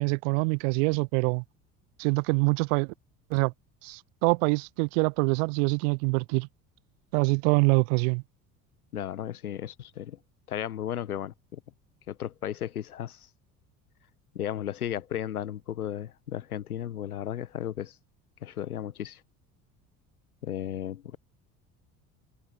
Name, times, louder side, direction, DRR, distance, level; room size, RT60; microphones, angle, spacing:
voice 1, 0.0-1.4 2.0-2.9 3.3-3.5 3.8-6.5 7.1-8.2, right 35 dB, 60° right, 0.5 m, -25 dB
voice 2, 8.9-10.2 10.5-11.6 12.1-13.3 14.3-17.9 18.4-19.2 20.4-21.2, left 10 dB, 85° left, 1.2 m, -34 dB
figure-of-eight pair, 65°, 43 cm